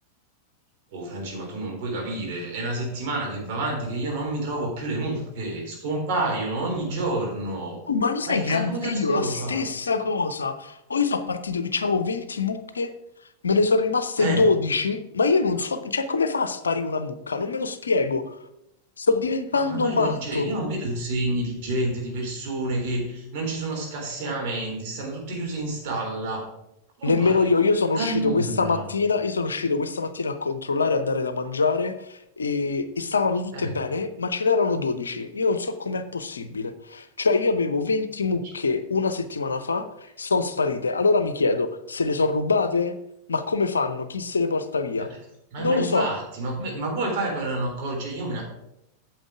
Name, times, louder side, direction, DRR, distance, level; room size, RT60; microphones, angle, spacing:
voice 1, 0.9-7.8 8.3-9.6 14.2-14.5 19.5-26.5 27.0-27.7 27.9-28.8 33.5-33.7 45.0-45.2 45.5-48.4, right 2 dB, 45° right, -1 dB, 3.7 m, -29 dB
voice 2, 7.9-12.9 13.4-18.4 19.0-20.5 27.0-42.9 43.3-45.1 45.6-46.1, left 4 dB, 75° left, 11 dB, 0.7 m, -24 dB
9.0 x 7.3 x 4.9 m, 0.84 s
figure-of-eight pair, 90°, 0 cm